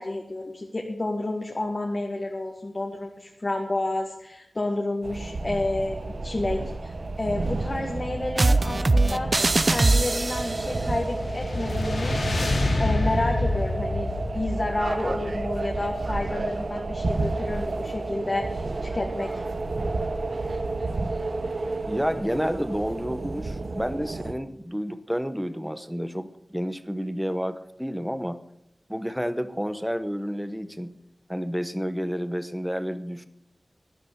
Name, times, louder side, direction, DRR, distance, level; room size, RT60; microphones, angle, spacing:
voice 1, 0.0-9.3 9.6-12.2 12.8-19.3, left 2 dB, 40° left, 1 dB, 1.6 m, -30 dB
sound 1, 5.0-24.3, right 3 dB, 65° right, 0.9 m, -31 dB
sound 2, 8.4-10.7, right 2 dB, 40° right, 0.6 m, -21 dB
sound 3, 10.6-16.0, left 1 dB, 75° left, 3.2 m, -28 dB
voice 2, 21.9-28.4 28.9-30.9 31.3-33.3, equal, ahead, 11 dB, 1.0 m, -30 dB
13.0 x 11.0 x 6.7 m, 0.79 s
wide cardioid pair, 90°, 0 cm